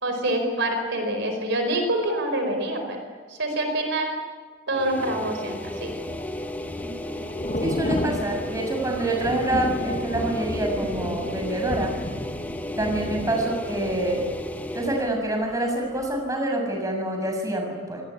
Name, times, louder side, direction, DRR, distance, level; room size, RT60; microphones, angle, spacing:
voice 1, 0.0-3.0 3.3-4.2 4.7-5.9, right 1 dB, 60° right, 5 dB, 4.9 m, -26 dB
sound 1, 4.7-15.1, equal, 10° left, 1.1 m, -34 dB
Thunder / Rain, 5.6-15.6 15.9-16.2, left 1 dB, 35° left, 1.6 m, -33 dB
voice 2, 6.8-7.2 7.6-11.9 12.8-14.2 14.7-18.0, right 1 dB, 15° right, 2 dB, 6.7 m, -26 dB
29.0 x 20.0 x 9.7 m, 1.5 s
head